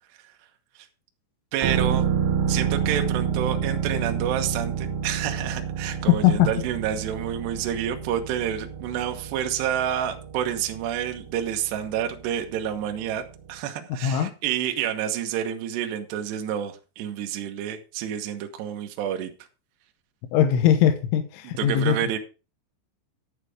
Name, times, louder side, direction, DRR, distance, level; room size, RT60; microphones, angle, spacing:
voice 1, 1.5-2.0 2.5-13.2 13.5-19.3 21.6-22.2, right 10 dB, 70° right, 5 dB, 3.0 m, -29 dB
sound 1, 1.6-13.2 13.5-13.6, right 7 dB, 85° right, 3.9 m, -29 dB
sound 2, 2.0-8.6, right 1 dB, 45° left, 3.0 m, -43 dB
voice 2, 20.3-22.0, left 10 dB, 80° left, 7 dB, 3.4 m, -20 dB
11.0 x 7.5 x 5.0 m, 0.33 s
omnidirectional pair, 5.6 m